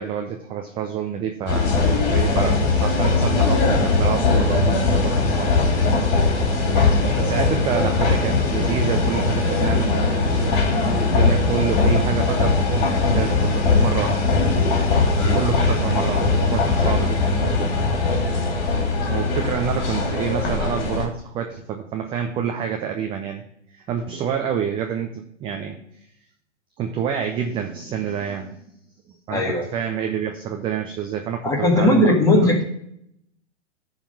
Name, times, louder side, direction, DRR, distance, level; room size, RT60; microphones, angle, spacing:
voice 1, 0.0-1.7 2.1-5.7 7.2-10.6 11.0-14.2 15.3-17.8 19.0-23.4 23.7-25.8 26.8-28.6 29.3-32.5, right 8 dB, 15° right, 4 dB, 0.6 m, -28 dB
sound 1, 1.5-21.1, left 3 dB, 40° left, 2.7 m, -20 dB
voice 2, 29.3-29.7 31.4-32.6, left 1 dB, 10° left, 0 dB, 1.7 m, -19 dB
11.5 x 4.1 x 5.2 m, 0.73 s
hypercardioid pair, 130°, 36 cm